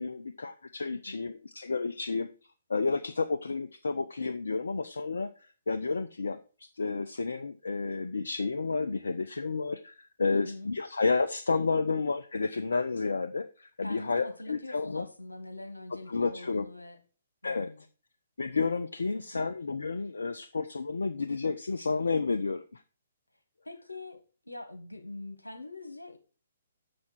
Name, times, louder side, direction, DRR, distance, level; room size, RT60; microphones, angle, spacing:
voice 1, 0.0-2.3 2.7-15.0 16.1-16.7 17.4-17.7 18.4-22.8, left 4 dB, 70° left, 9 dB, 0.6 m, -31 dB
voice 2, 10.3-10.7 13.8-17.0 17.4-17.8 19.3-19.5 23.6-24.2 24.4-26.2, left 2 dB, 90° left, 6 dB, 1.6 m, -43 dB
7.0 x 6.4 x 4.4 m, 0.36 s
figure-of-eight pair, 125°, 0 cm